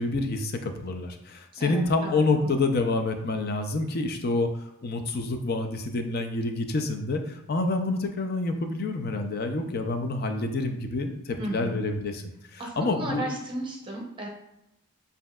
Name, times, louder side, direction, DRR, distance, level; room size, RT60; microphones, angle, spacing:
voice 1, 0.0-4.5 4.8-12.2 12.5-13.3, left 3 dB, 45° left, 6 dB, 0.5 m, -28 dB
voice 2, 1.6-2.5 11.4-11.8 12.6-14.3, right 1 dB, 20° right, -2 dB, 0.7 m, -35 dB
7.4 x 2.7 x 2.3 m, 0.86 s
head